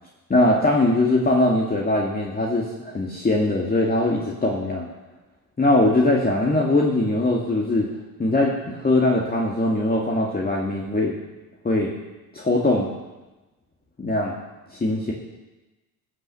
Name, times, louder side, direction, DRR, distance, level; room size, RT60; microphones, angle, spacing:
voice 1, 0.3-4.9 5.6-7.9 8.2-11.1 11.6-11.9 12.3-12.9 14.0-14.3 14.7-15.1, left 2 dB, 20° left, -2 dB, 2.1 m, -21 dB
16.0 x 6.1 x 6.9 m, 1.1 s
supercardioid pair, 75°, 42 cm